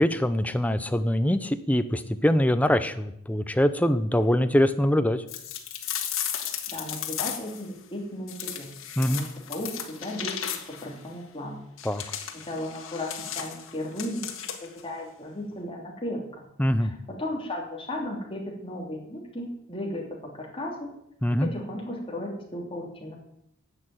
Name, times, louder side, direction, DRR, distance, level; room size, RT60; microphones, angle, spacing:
voice 1, 0.0-5.2 9.0-9.2 11.8-12.0 16.6-16.9 21.2-21.5, equal, 5° left, 10 dB, 0.6 m, -23 dB
sound 1, 5.3-7.6 8.3-10.9 11.8-14.8, left 9 dB, 80° left, 1.6 m, -35 dB
voice 2, 6.7-8.7 9.1-10.3 10.8-11.6 12.0-14.3 14.6-16.5 16.8-20.9 21.4-23.1, left 1 dB, 25° left, -1 dB, 2.9 m, -35 dB
10.5 x 6.7 x 8.9 m, 0.77 s
head